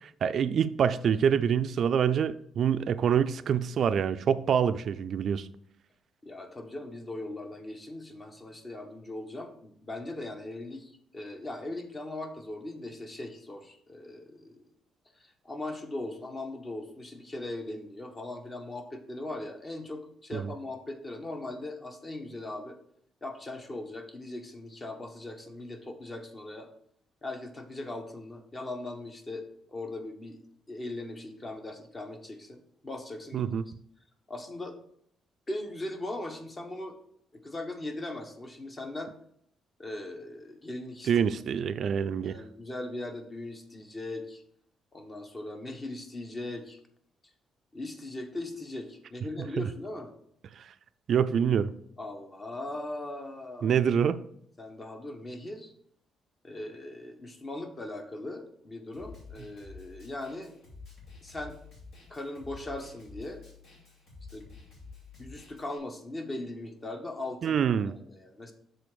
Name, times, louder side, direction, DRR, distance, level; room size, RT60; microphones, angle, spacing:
voice 1, 0.0-5.5 20.3-20.5 33.3-33.6 41.1-42.4 49.6-49.7 50.6-50.7 51.1-51.7 53.6-54.2 67.4-67.9, right 8 dB, 60° right, 0.3 m, -26 dB
voice 2, 6.2-14.6 15.2-22.8 23.2-26.7 27.2-30.4 30.7-33.5 34.3-34.8 35.5-36.9 37.3-39.1 39.8-41.1 42.2-44.4 44.9-46.8 47.7-50.1 52.0-53.7 54.6-55.7 56.4-60.5 61.2-61.6 62.1-63.4 64.3-64.6 65.2-68.5, left 2 dB, 30° left, 1.1 m, -39 dB
Snare drum, 58.9-65.8, left 4 dB, 65° left, 2.5 m, -50 dB
6.8 x 3.8 x 4.9 m
cardioid pair, 90°, 0 cm